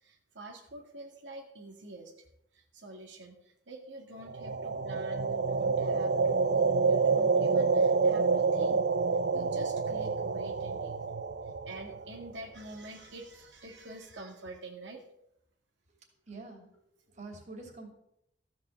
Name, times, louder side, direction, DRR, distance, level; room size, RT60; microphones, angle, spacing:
voice 1, 0.0-2.1 2.5-8.8 9.3-11.0 11.7-15.0, right 2 dB, 85° right, 2 dB, 1.9 m, -46 dB
sound 1, 4.3-12.3, right 4 dB, 65° right, 0.7 m, -28 dB
voice 2, 16.3-16.8 17.1-17.9, right 3 dB, 40° right, 2 dB, 2.8 m, -45 dB
14.5 x 6.1 x 7.4 m, 0.77 s
head